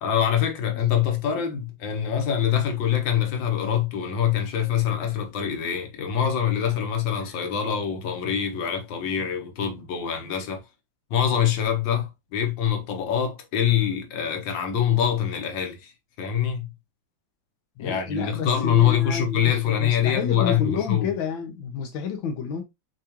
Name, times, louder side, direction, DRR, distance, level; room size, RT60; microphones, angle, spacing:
voice 1, 0.0-10.6 11.1-15.9 16.2-16.7 17.8-21.1, left 9 dB, 75° left, 1.8 m, -24 dB
voice 2, 17.8-22.6, left 6 dB, 90° left, 1.6 m, -30 dB
7.1 x 2.5 x 2.9 m
omnidirectional pair, 2.1 m